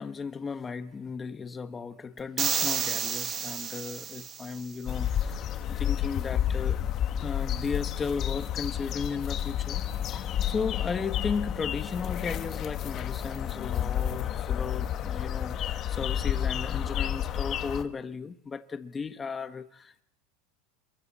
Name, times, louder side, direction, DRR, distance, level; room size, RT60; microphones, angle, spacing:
voice 1, 0.0-6.8 7.2-20.0, left 5 dB, 20° left, 9 dB, 1.3 m, -35 dB
sound 1, 2.4-4.7, right 7 dB, 30° right, 1.8 m, -31 dB
sound 2, 4.9-17.8, left 10 dB, 35° left, 1.4 m, -30 dB
27.5 x 23.5 x 4.3 m, 0.71 s
supercardioid pair, 135°, 0 cm